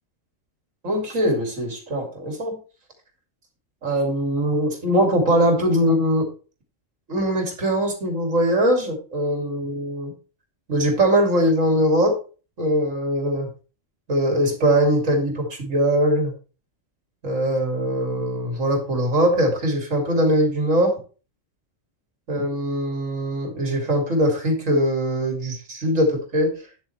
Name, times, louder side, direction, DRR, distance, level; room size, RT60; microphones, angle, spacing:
voice 1, 0.8-2.6 3.8-6.3 7.1-10.1 10.7-12.2 12.6-13.5 14.1-16.3 17.2-21.0 22.3-26.5, equal, 85° right, 2 dB, 3.1 m, -21 dB
10.0 x 7.5 x 3.3 m, 0.34 s
omnidirectional pair, 1.3 m